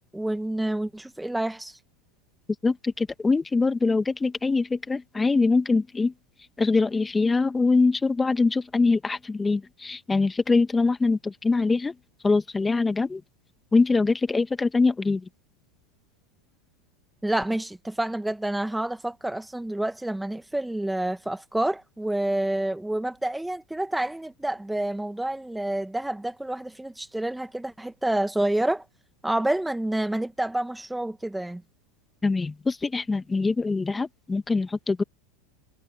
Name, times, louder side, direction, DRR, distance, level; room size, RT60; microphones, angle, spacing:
voice 1, 0.1-1.8 17.2-28.8 29.2-31.6, right 1 dB, 5° right, 1.8 m, -28 dB
voice 2, 2.6-6.1 6.6-11.9 12.2-13.2 13.7-15.2 32.2-35.0, left 3 dB, 15° left, 1.8 m, -23 dB
hypercardioid pair, 100°, 0 cm